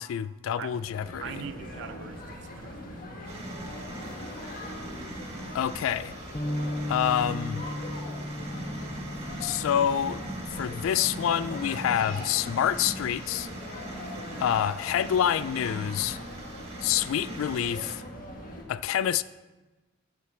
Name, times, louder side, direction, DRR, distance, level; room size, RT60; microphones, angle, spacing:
voice 1, 0.0-1.2 5.5-6.1 6.9-7.6 9.4-10.2 10.5-13.5 14.4-16.2 16.8-18.0 18.7-19.2, left 9 dB, 80° left, 0.3 m, -27 dB
sound 1, 0.7-18.6, left 1 dB, 45° left, 1.7 m, -41 dB
voice 2, 1.2-3.3, right 7 dB, 60° right, 0.3 m, -42 dB
sound 2, 3.3-18.0, right 1 dB, 30° right, 1.6 m, -41 dB
Bass guitar, 6.3-12.6, left 1 dB, 15° left, 0.4 m, -37 dB
7.5 x 7.1 x 7.3 m
head